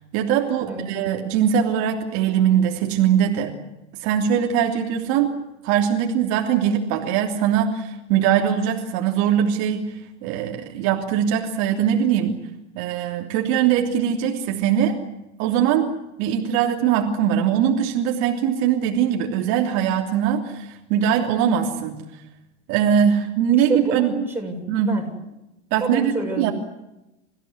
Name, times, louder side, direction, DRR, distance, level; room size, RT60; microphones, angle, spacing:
voice 1, 0.1-3.5 4.0-5.3 5.6-12.4 12.7-15.0 15.4-15.9 16.2-22.0 22.7-24.1 24.7-25.0 25.7-26.5, right 9 dB, 55° right, 1 dB, 3.2 m, -21 dB
voice 2, 23.7-25.0 25.8-26.5, right 2 dB, 5° right, 0 dB, 7.6 m, -28 dB
28.5 x 16.0 x 9.7 m, 0.96 s
supercardioid pair, 115°, 34 cm